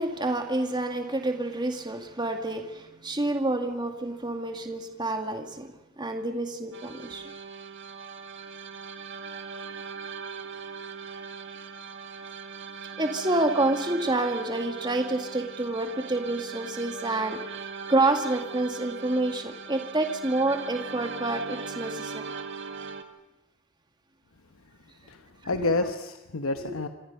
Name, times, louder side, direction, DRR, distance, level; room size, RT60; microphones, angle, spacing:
voice 1, 0.0-7.2 13.0-17.4 17.9-22.2 25.5-25.7 26.7-26.8, right 2 dB, 20° right, 2.1 m, -28 dB
sound 1, 6.7-23.0, right 5 dB, 55° right, 1.8 m, -39 dB
voice 2, 25.1-26.9, left 2 dB, 75° left, 1.1 m, -29 dB
26.5 x 26.0 x 5.6 m
head